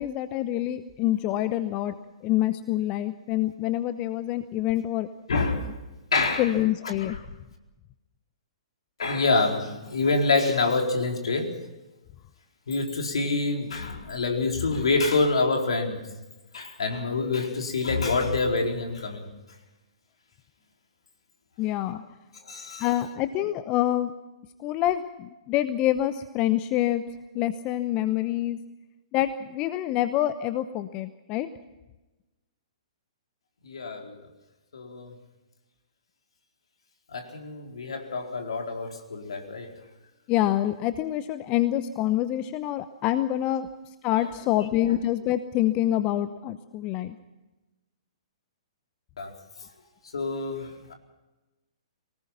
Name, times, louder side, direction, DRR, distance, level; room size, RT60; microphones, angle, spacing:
voice 1, 0.0-1.9 2.2-5.1 6.4-7.2 21.6-22.0 22.8-24.1 24.6-27.0 27.3-28.6 29.1-31.5 40.3-43.7 44.0-47.1, left 13 dB, 30° left, 12 dB, 0.8 m, -26 dB
voice 2, 5.3-5.7 6.1-6.5 7.0-7.2 9.0-11.6 12.7-16.0 16.5-19.3 22.4-22.9 33.6-34.2 34.7-35.1 37.1-39.7 44.2-44.3 49.2-49.3 50.1-50.9, left 3 dB, 65° left, 2 dB, 4.3 m, -26 dB
24.5 x 19.0 x 5.9 m, 1.1 s
figure-of-eight pair, 115°, 3 cm